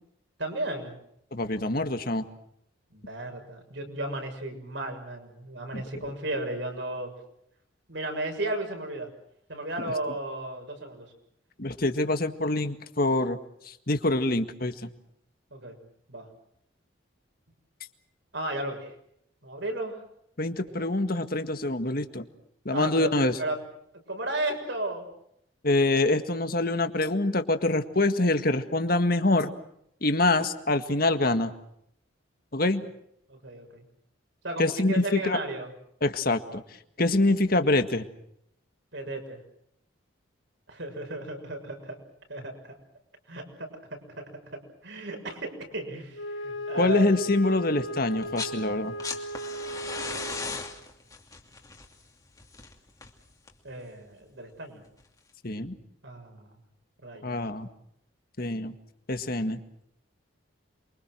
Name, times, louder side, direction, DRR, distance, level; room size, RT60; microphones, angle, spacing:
voice 1, 0.4-1.0 2.9-7.1 7.9-9.1 9.5-11.1 15.5-15.8 16.1-16.3 18.3-18.9 19.4-20.0 20.7-20.8 22.7-23.6 24.1-25.1 32.8-32.9 33.3-33.8 34.4-35.7 38.9-39.4 40.7-42.0 42.3-42.8 43.3-43.7 44.2-44.3 44.8-47.2 53.6-54.8 56.0-56.5 57.0-57.4, right 1 dB, 65° right, 4 dB, 6.7 m, -34 dB
voice 2, 1.3-2.2 5.7-5.8 9.8-9.9 11.6-13.4 13.7-14.9 20.4-22.3 22.7-23.4 25.6-29.5 30.0-31.5 32.5-32.8 34.6-35.4 36.0-36.6 37.0-38.1 46.7-49.0 55.4-55.8 57.2-57.7 58.4-58.7 59.1-59.6, left 2 dB, 50° left, 8 dB, 1.8 m, -25 dB
Wind instrument woodwind instrument, 46.1-50.7, left 1 dB, 75° left, 3.1 m, -36 dB
sound 1, 48.1-48.6 48.8-53.7 55.0-55.1, left 4 dB, 20° left, 2.7 m, -37 dB
28.5 x 24.0 x 6.3 m, 0.73 s
head